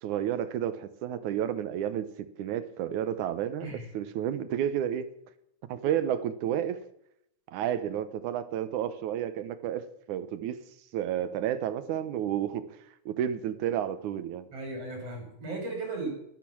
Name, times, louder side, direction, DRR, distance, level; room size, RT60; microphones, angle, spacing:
voice 1, 0.0-5.1 5.7-6.8 7.5-10.6 10.9-12.7 13.1-14.5, right 10 dB, 80° right, 12 dB, 2.4 m, -31 dB
voice 2, 14.5-16.1, right 2 dB, 50° right, 1 dB, 6.8 m, -36 dB
13.0 x 12.5 x 6.1 m, 0.76 s
omnidirectional pair, 3.5 m